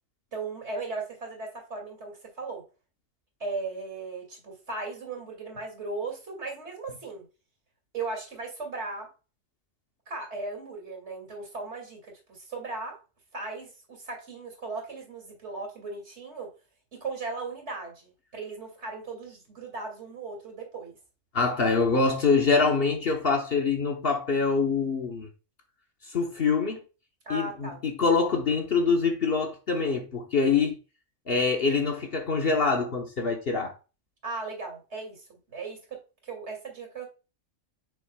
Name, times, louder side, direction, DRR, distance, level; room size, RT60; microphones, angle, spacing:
voice 1, 0.3-2.7 3.4-7.2 7.9-9.1 10.1-13.0 13.3-16.5 16.9-20.9 27.3-27.8 34.2-37.1, right 3 dB, 55° right, 2.7 m, -37 dB
voice 2, 21.3-25.3 26.1-26.8 27.3-30.8 31.3-33.7, left 4 dB, 50° left, 1.2 m, -25 dB
7.4 x 6.0 x 2.3 m
omnidirectional pair, 1.4 m